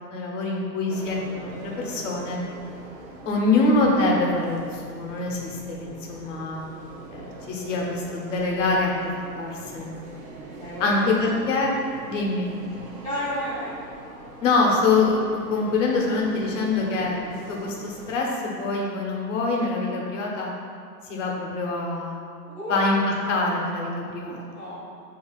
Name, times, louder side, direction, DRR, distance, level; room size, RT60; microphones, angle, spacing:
voice 1, 0.1-2.4 3.2-6.6 7.1-9.9 10.8-11.7 12.1-12.5 14.4-17.2 17.5-20.5 21.1-22.2 22.7-23.0 23.3-24.6, left 3 dB, 50° left, -2 dB, 0.9 m, -25 dB
sound 1, 0.9-18.2, right 2 dB, 50° right, 0.8 m, -42 dB
voice 2, 10.5-11.2 13.0-13.7 22.5-22.8 24.4-24.8, equal, 15° right, -17 dB, 0.3 m, -32 dB
6.8 x 2.8 x 2.3 m, 2.2 s
hypercardioid pair, 135°, 50 cm